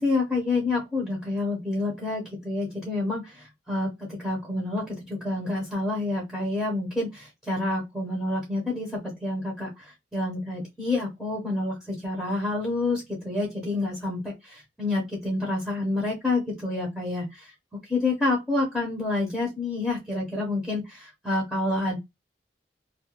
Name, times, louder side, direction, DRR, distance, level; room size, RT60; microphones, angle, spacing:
voice 1, 0.0-17.5 17.8-22.0, left 2 dB, ahead, -4 dB, 0.8 m, -28 dB
2.4 x 2.2 x 2.8 m, 0.21 s
head